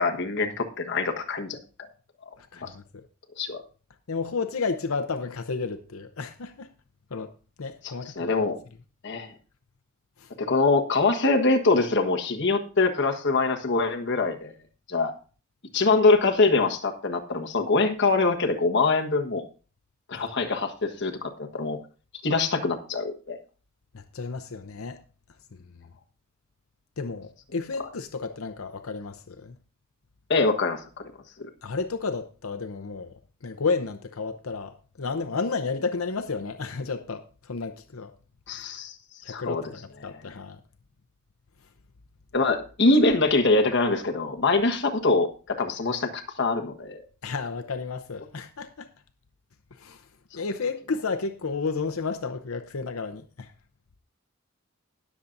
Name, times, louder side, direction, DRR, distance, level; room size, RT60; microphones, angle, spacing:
voice 1, 0.0-1.6 2.6-2.7 3.4-3.6 7.8-8.6 9.0-9.3 10.4-14.5 14.9-15.1 15.7-19.4 20.1-21.8 22.2-23.4 30.3-31.1 31.4-31.5 38.5-38.9 39.3-39.6 42.3-47.0, left 3 dB, 55° left, 1.4 m, -24 dB
voice 2, 2.4-3.1 4.1-6.7 7.1-7.3 7.6-8.5 10.2-10.3 20.1-20.3 23.9-25.0 25.5-25.9 27.0-29.6 31.6-38.1 39.2-40.6 47.2-48.9 49.7-50.1 50.3-53.5, left 4 dB, 80° left, 0.7 m, -32 dB
20.0 x 7.2 x 2.6 m
head